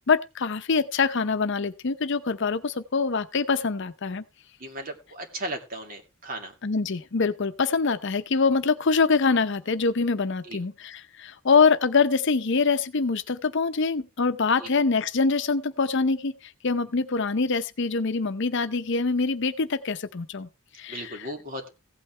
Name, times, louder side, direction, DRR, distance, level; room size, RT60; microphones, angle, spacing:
voice 1, 0.1-4.2 6.6-20.5 20.8-21.3, left 4 dB, 60° left, 0.7 m, -24 dB
voice 2, 4.6-6.5 10.4-10.6 14.6-14.7 20.9-21.7, right 1 dB, 45° right, 2.2 m, -36 dB
16.0 x 8.5 x 3.3 m
head